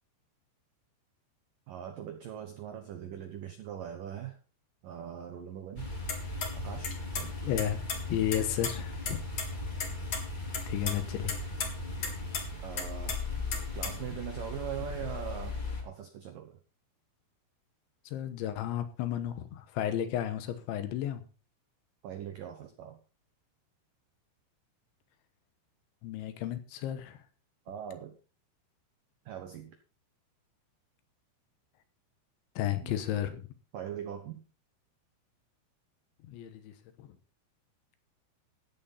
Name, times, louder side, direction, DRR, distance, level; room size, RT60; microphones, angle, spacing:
voice 1, 1.7-4.4 4.8-5.9 6.5-7.3 12.6-13.2 13.7-16.5 22.0-23.0 27.7-28.1 29.3-29.7 32.8-33.0 33.7-34.4, right 9 dB, 85° right, 7 dB, 1.9 m, -41 dB
sound 1, 5.8-15.8, left 2 dB, 20° left, 1.4 m, -38 dB
sound 2, 6.1-6.5 6.8-7.3 7.6-8.7 9.1-9.2 9.4-9.5 9.8-10.2 10.5-10.9 11.3-11.7 12.0-12.4 12.8-14.1, left 5 dB, 45° left, 2.4 m, -34 dB
voice 2, 7.4-7.8 8.1-9.2 10.7-11.4 18.1-21.2 26.0-27.2 32.6-33.5 36.3-37.1, left 11 dB, 75° left, 9 dB, 3.4 m, -33 dB
14.5 x 9.7 x 4.2 m, 0.34 s
omnidirectional pair, 5.7 m